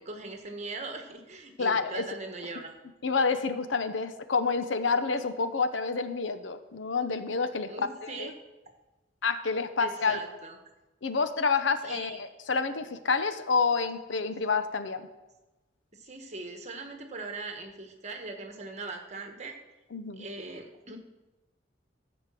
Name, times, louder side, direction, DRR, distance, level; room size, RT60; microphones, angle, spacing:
voice 1, 0.0-2.7 7.7-8.3 9.8-10.6 11.8-12.2 15.9-19.5 20.2-21.0, right 3 dB, 35° right, 4 dB, 1.4 m, -40 dB
voice 2, 1.6-2.0 3.0-7.7 8.2-8.3 9.2-10.2 11.0-15.1 19.9-20.3, left 4 dB, 75° left, 10 dB, 0.8 m, -28 dB
14.0 x 5.2 x 7.6 m, 1.1 s
head